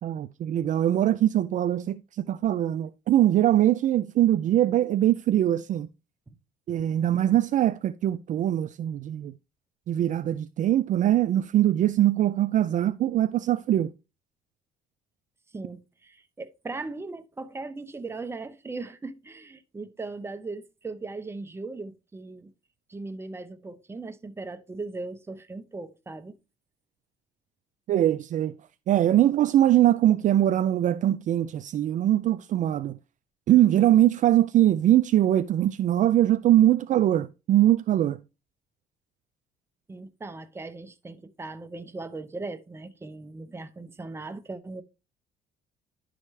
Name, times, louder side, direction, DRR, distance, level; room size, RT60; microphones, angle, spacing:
voice 1, 0.0-5.9 6.7-9.3 9.9-13.9 27.9-28.5 28.9-33.0 33.5-38.2, right 12 dB, 50° right, 0.4 m, -22 dB
voice 2, 15.5-22.5 22.9-26.4 39.9-44.8, right 3 dB, 15° right, 0.7 m, -38 dB
11.0 x 5.0 x 3.2 m
cardioid pair, 110°, 17 cm